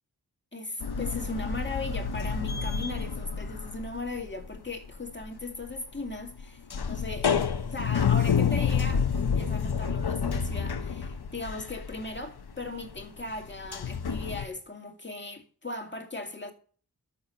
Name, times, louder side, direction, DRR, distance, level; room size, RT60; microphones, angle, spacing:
voice 1, 0.5-16.5, left 2 dB, 30° left, 2.1 m, -38 dB
sound 1, 0.8-4.6 4.8-14.5, left 6 dB, 85° left, 0.9 m, -29 dB
12.5 x 7.0 x 5.7 m
wide cardioid pair, 65°, 37 cm